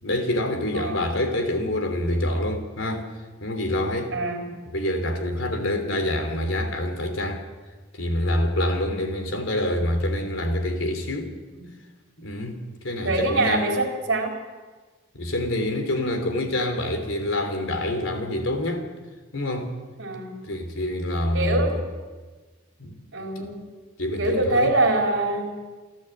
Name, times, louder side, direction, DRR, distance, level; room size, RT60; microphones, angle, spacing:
voice 1, 0.0-3.0 3.4-4.1 4.7-7.4 7.9-11.3 12.2-13.7 15.1-18.9 19.3-19.7 20.4-21.7 22.8-23.0 23.4-23.5 24.0-24.7, left 1 dB, 75° left, 3.2 m, -26 dB
voice 2, 0.7-1.1 4.1-4.4 11.5-11.7 13.0-14.3 20.0-20.3 21.3-21.7 23.1-23.6 24.2-25.5, right 2 dB, 65° right, 4.0 m, -24 dB
29.0 x 11.5 x 7.9 m
head